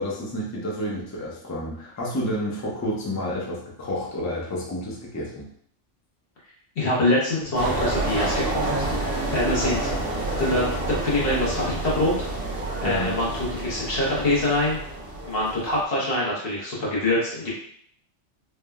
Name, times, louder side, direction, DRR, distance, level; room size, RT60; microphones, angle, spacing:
voice 1, 0.0-5.5 12.8-13.1, equal, 25° left, -3 dB, 0.3 m, -30 dB
voice 2, 6.8-9.9 10.4-12.1 12.8-14.8 15.3-17.6, left 1 dB, 60° left, -6 dB, 1.0 m, -25 dB
sound 1, 7.5-15.8, right 2 dB, 60° right, 0.9 m, -29 dB
3.2 x 2.0 x 2.2 m, 0.63 s
omnidirectional pair, 1.2 m